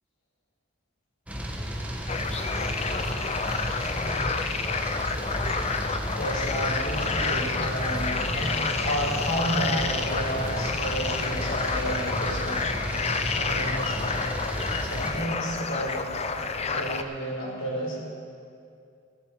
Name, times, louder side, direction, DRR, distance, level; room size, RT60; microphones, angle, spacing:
sound 1, 1.3-15.1, equal, 5° right, 1.4 m, -33 dB
sound 2, 2.1-17.0, left 4 dB, 30° left, 0.6 m, -29 dB
voice 1, 4.0-4.3 6.2-12.7 13.3-14.1 14.8-16.0 16.6-18.0, right 1 dB, 75° left, -3 dB, 4.4 m, -32 dB
16.0 x 12.5 x 5.1 m, 2.4 s
head